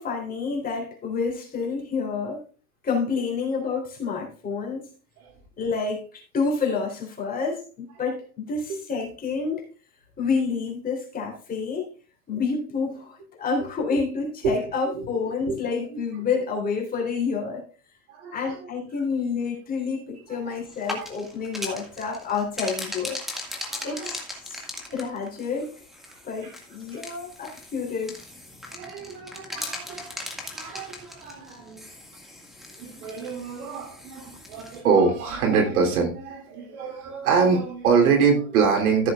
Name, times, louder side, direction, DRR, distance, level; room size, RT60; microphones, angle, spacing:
voice 1, 0.0-2.4 2.8-4.9 5.6-9.6 10.2-11.9 12.3-17.6 18.3-23.2 23.8-24.2 24.4-24.6 24.9-25.7 26.2-28.2, left 5 dB, 20° left, -1 dB, 3.6 m, -28 dB
voice 2, 18.1-18.6 20.3-20.6 21.0-21.1 23.7-24.2 26.4-26.5 26.9-27.0 28.7-30.1 30.5-31.8 32.8-39.1, right 5 dB, 85° right, 2 dB, 3.3 m, -25 dB
sound 1, 20.7-34.8, left 1 dB, ahead, 2.0 m, -39 dB
14.5 x 7.7 x 2.5 m, 0.38 s
supercardioid pair, 140°, 42 cm